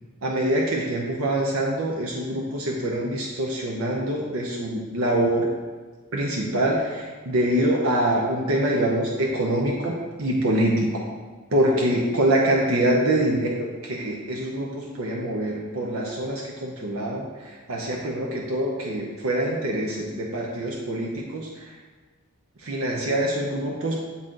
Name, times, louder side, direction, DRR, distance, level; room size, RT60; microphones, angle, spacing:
voice 1, 0.2-5.5 6.1-11.0 11.5-21.7 22.6-24.0, right 1 dB, 65° right, -2 dB, 0.7 m, -25 dB
7.5 x 4.1 x 3.8 m, 1.4 s
head